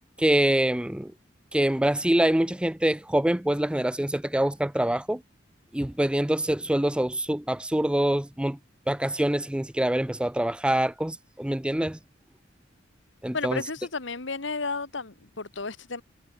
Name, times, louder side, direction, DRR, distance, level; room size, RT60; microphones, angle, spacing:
voice 1, 0.2-1.1 1.5-5.2 5.7-8.6 8.9-12.0 13.2-13.6, right 1 dB, 5° right, 0.5 m, -25 dB
voice 2, 13.3-16.0, left 4 dB, 70° left, 1.8 m, -32 dB
head